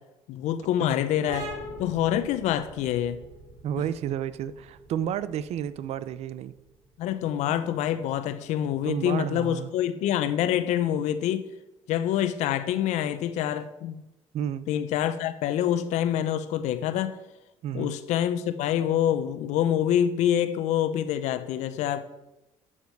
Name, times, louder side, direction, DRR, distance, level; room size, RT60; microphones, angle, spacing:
voice 1, 0.3-1.5 1.8-3.2 3.8-3.9 7.0-11.5 11.9-14.0 14.7-17.2 17.7-22.0, left 10 dB, 75° left, 0.8 m, -26 dB
sound 1, 1.3-8.6, equal, 80° right, 2.9 m, -44 dB
voice 2, 3.6-6.5 8.9-9.7 14.3-14.7 17.6-17.9, right 10 dB, 60° right, 0.6 m, -31 dB
11.5 x 7.4 x 4.7 m
cardioid pair, 100°, 12 cm